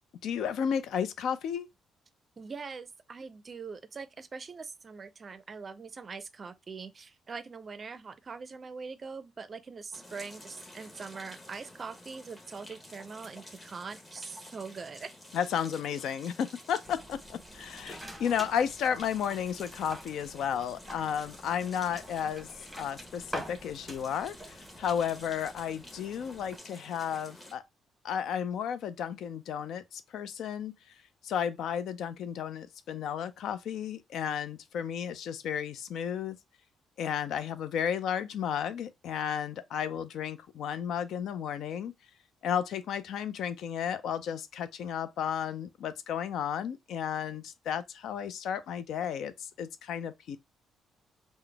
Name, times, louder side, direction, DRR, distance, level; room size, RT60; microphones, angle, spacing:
voice 1, 0.2-1.7 15.3-22.5 22.8-27.6 28.0-30.7 31.2-36.4 37.0-41.9 42.4-50.4, left 8 dB, 75° left, 0.4 m, -33 dB
voice 2, 2.4-15.1, right 5 dB, 40° right, 0.4 m, -43 dB
sound 1, 9.9-27.5, left 1 dB, 15° left, 1.1 m, -51 dB
sound 2, 16.8-26.6, right 1 dB, 10° right, 0.9 m, -47 dB
3.8 x 2.1 x 3.3 m
cardioid pair, 90°, 0 cm